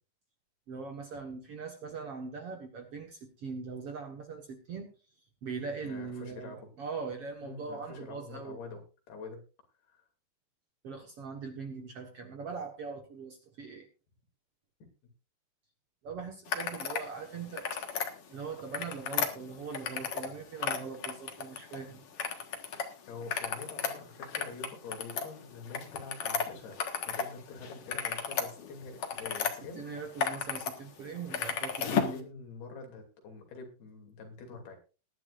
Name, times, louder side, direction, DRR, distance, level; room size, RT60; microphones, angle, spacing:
voice 1, 0.7-4.9 5.4-8.6 10.8-13.9 16.0-17.8 18.3-22.0 29.8-32.3, right 5 dB, 55° right, 3 dB, 1.7 m, -41 dB
voice 2, 5.8-6.7 7.4-9.4 9.8-10.1 23.1-26.8 27.0-29.9 30.9-31.1 31.8-34.8, left 4 dB, 90° left, 3 dB, 4.7 m, -46 dB
sound 1, 16.5-17.1 17.4-18.1 18.6-20.3 20.6-21.8 22.2-22.9 23.2-27.3 27.6-29.5 30.0-30.7 31.0-32.2, left 6 dB, 50° left, 1.9 m, -33 dB
20.0 x 11.0 x 2.5 m, 0.34 s
omnidirectional pair, 4.3 m